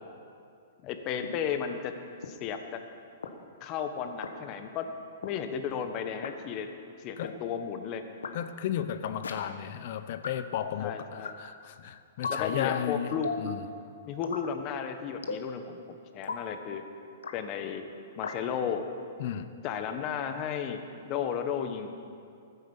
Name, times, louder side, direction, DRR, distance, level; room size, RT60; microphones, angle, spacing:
voice 1, 0.8-1.9 2.2-2.8 3.6-4.9 5.2-6.7 7.0-8.0 10.8-11.3 12.3-13.6 14.1-16.8 17.3-17.8 18.2-18.9 19.6-21.9, left 7 dB, 35° left, 7 dB, 1.4 m, -34 dB
sound 1, 1.2-1.3 2.2-2.3 3.2-3.3 4.2-4.3 5.2-5.3 6.2-6.3 7.2-7.3 8.2-8.3 9.2-9.3 10.2-10.3 11.2-11.3 12.2-12.4 13.2-13.5 14.2-14.5 15.2-15.5 16.2-16.4 17.2-17.4 18.2-18.4, left 5 dB, 90° left, 1.3 m, -35 dB
voice 2, 8.3-13.6 19.2-19.5, left 10 dB, 55° left, 11 dB, 0.9 m, -34 dB
14.5 x 10.0 x 7.3 m, 2.4 s
hypercardioid pair, 130°, 0 cm